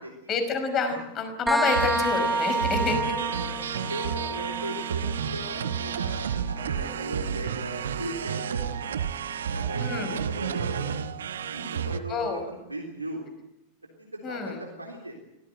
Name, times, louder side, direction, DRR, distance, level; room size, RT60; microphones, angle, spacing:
voice 1, 0.3-3.0 9.8-10.2 12.1-12.4 14.2-14.6, left 5 dB, 30° left, 8 dB, 5.5 m, -28 dB
sound 1, 1.5-8.9, right 2 dB, 5° right, 1.4 m, -31 dB
sound 2, 1.6-12.0, right 7 dB, 65° right, 1.3 m, -31 dB
voice 2, 3.1-9.0 9.4-11.0 11.2-13.2 13.8-15.2, right 1 dB, 85° right, 0 dB, 3.7 m, -38 dB
25.5 x 18.0 x 9.3 m, 0.91 s
figure-of-eight pair, 90°, 0 cm